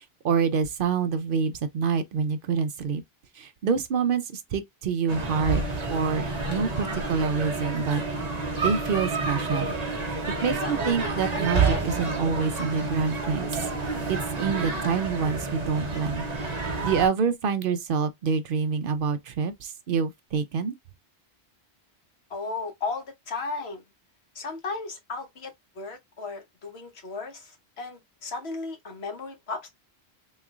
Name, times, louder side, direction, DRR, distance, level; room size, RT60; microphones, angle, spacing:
voice 1, 0.2-3.0 3.4-5.6 5.9-8.0 8.6-9.7 10.4-13.6 14.1-16.3 16.8-20.7, right 6 dB, 65° right, 0.7 m, -27 dB
sound 1, 5.1-17.1, right 3 dB, 40° right, 1.1 m, -29 dB
voice 2, 22.3-23.8 24.3-29.7, left 4 dB, 85° left, 1.3 m, -35 dB
3.7 x 3.2 x 2.3 m
omnidirectional pair, 1.0 m